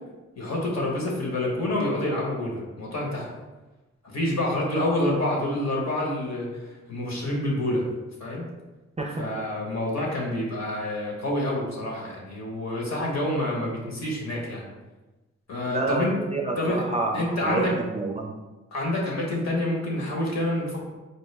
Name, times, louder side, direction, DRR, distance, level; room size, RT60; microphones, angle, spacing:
voice 1, 0.4-3.3 4.0-7.8 8.2-8.5 9.2-14.7 15.5-16.1 16.6-16.8 17.1-17.7 18.7-20.8, left 1 dB, 60° left, -2 dB, 1.1 m, -27 dB
voice 2, 9.0-9.3 15.7-18.3, right 3 dB, 25° right, 1 dB, 0.4 m, -28 dB
4.3 x 2.1 x 3.3 m, 1.1 s
cardioid pair, 65°, 30 cm